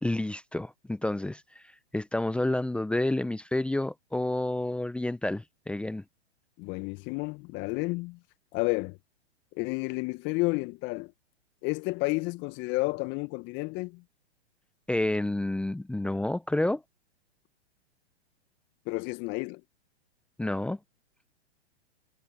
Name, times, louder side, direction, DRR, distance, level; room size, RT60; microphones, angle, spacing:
voice 1, 0.0-1.6 1.9-6.0 14.9-16.8 20.4-20.8, left 1 dB, 5° left, 1.1 m, -29 dB
voice 2, 6.6-8.2 8.5-9.0 9.5-11.1 11.6-14.0 18.8-19.6, left 26 dB, 35° left, 1.6 m, -31 dB
figure-of-eight pair, 115°, 33 cm